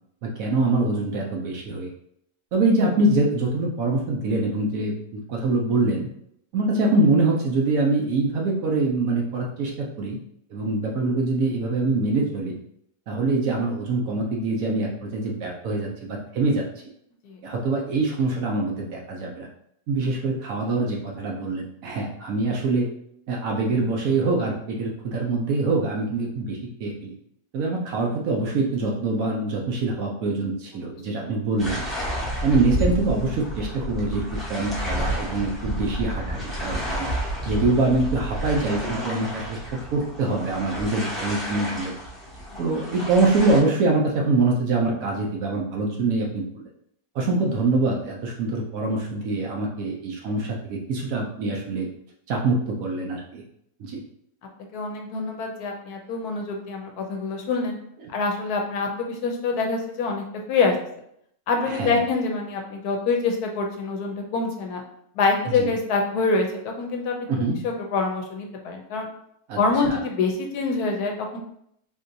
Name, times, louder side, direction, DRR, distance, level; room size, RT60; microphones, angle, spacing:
voice 1, 0.2-1.9 2.5-6.1 6.5-10.2 10.5-12.5 13.1-16.6 17.4-19.5 19.9-22.9 23.3-27.1 27.5-31.8 32.4-34.2 34.5-37.1 37.4-39.6 39.9-41.9 42.6-46.7 47.1-51.9 52.3-53.4 53.8-54.0 61.7-62.0 65.5-65.7 67.3-67.6 69.5-69.6 69.9-70.0, right 3 dB, 65° right, 0 dB, 1.0 m, -24 dB
sound 1, 31.6-43.6, equal, ahead, 0.5 m, -30 dB
voice 2, 54.7-57.8 58.1-60.8 61.5-64.8 65.2-66.5 66.8-67.1 67.6-69.1 69.6-71.4, left 4 dB, 75° left, 2 dB, 1.0 m, -25 dB
3.7 x 2.7 x 2.6 m, 0.72 s
omnidirectional pair, 1.8 m